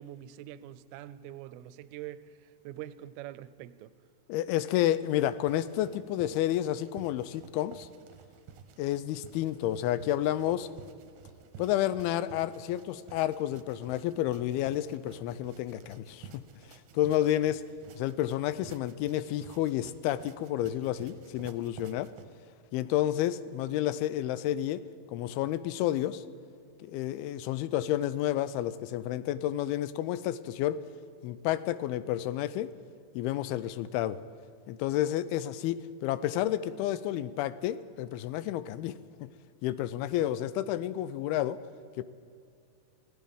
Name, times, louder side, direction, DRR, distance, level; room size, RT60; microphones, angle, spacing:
voice 1, 0.0-3.9 16.7-16.8, right 13 dB, 90° right, 2.5 m, -44 dB
voice 2, 4.3-7.9 8.8-10.7 11.6-17.6 18.0-22.1 22.7-24.8 25.1-26.2 26.8-30.8 31.2-32.7 33.1-34.2 34.7-39.3 39.6-41.6 42.0-42.1, left 12 dB, 85° left, 2.5 m, -30 dB
sound 1, 5.0-22.3, right 7 dB, 70° right, 2.1 m, -53 dB
25.0 x 16.0 x 3.6 m
omnidirectional pair, 4.4 m